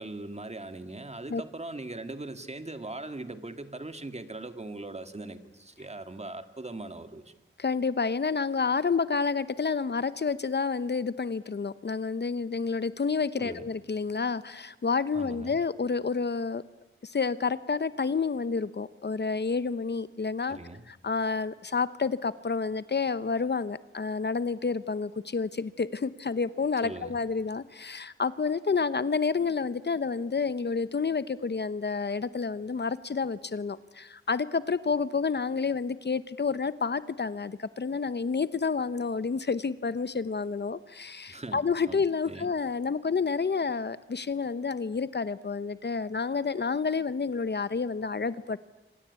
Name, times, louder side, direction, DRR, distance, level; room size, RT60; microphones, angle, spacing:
voice 1, 0.0-7.3 13.4-13.7 15.1-15.6 20.5-20.8 26.8-27.2 41.3-42.0 42.3-42.5, right 2 dB, 30° right, 9 dB, 2.2 m, -40 dB
voice 2, 7.6-16.6 17.0-20.6 20.9-48.6, left 5 dB, 55° left, 15 dB, 0.9 m, -29 dB
26.5 x 26.0 x 8.4 m, 0.99 s
wide cardioid pair, 65°, 21 cm